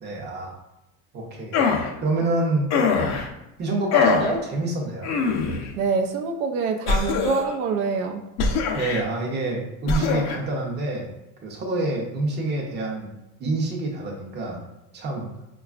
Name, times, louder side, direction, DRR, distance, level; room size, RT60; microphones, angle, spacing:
voice 1, 0.0-0.5 1.1-1.6 2.0-2.7 3.6-5.3 8.7-11.1 11.4-13.1 13.4-14.6 14.9-15.3, right 2 dB, 25° right, -1 dB, 0.7 m, -27 dB
sound 1, 1.5-1.9 2.7-3.3 3.9-4.3 5.0-5.7 6.9-7.6 8.4-9.0 9.9-10.4, left 5 dB, 40° left, 0.5 m, -22 dB
voice 2, 5.8-8.2, right 5 dB, 70° right, 3 dB, 0.6 m, -25 dB
4.6 x 2.3 x 2.3 m, 0.93 s
supercardioid pair, 130°, 43 cm